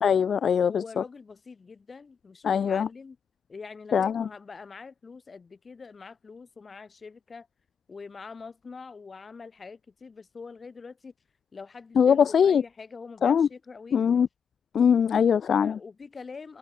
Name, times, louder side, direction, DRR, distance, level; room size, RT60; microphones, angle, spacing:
voice 1, 0.0-0.8 2.4-2.9 3.9-4.2 12.0-12.6 13.2-13.5 13.9-14.3 14.7-15.7, left 7 dB, 60° left, 0.6 m, -21 dB
voice 2, 0.7-3.2 3.5-7.5 7.9-11.1 11.5-14.2 15.6-16.6, left 4 dB, 35° left, 4.4 m, -44 dB
cardioid pair, 105°, 0 cm